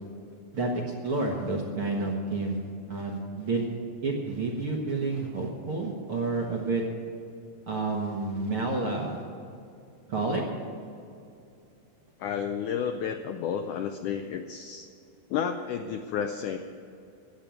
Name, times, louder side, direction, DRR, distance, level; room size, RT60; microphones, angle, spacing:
voice 1, 1.0-2.6 2.9-3.7 4.0-6.8 7.7-9.2 10.1-10.4, right 3 dB, 50° right, -1 dB, 1.7 m, -29 dB
voice 2, 12.2-14.9 15.3-16.6, left 7 dB, 85° left, 6 dB, 1.8 m, -31 dB
14.5 x 8.7 x 9.2 m, 2.5 s
omnidirectional pair, 4.3 m